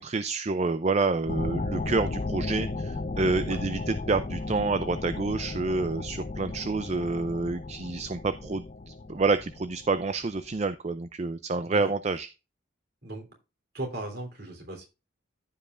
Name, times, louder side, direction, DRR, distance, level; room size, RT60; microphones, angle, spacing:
voice 1, 0.0-12.3, right 3 dB, 35° right, 12 dB, 0.4 m, -28 dB
sound 1, 1.3-10.4, left 3 dB, 35° left, 0.4 m, -35 dB
voice 2, 13.7-14.9, right 2 dB, 50° right, 2 dB, 3.4 m, -37 dB
14.5 x 5.4 x 2.5 m, 0.28 s
head